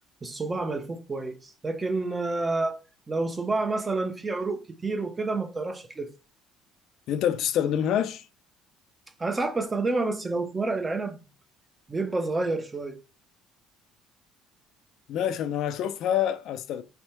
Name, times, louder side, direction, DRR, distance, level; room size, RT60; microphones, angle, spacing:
voice 1, 0.2-2.8 3.1-6.1 9.2-11.2 11.9-13.0, right 3 dB, 15° right, 0.5 m, -29 dB
voice 2, 7.1-8.3 15.1-16.8, left 10 dB, 50° left, 0.4 m, -26 dB
3.5 x 3.4 x 4.3 m
cardioid pair, 170°, 0 cm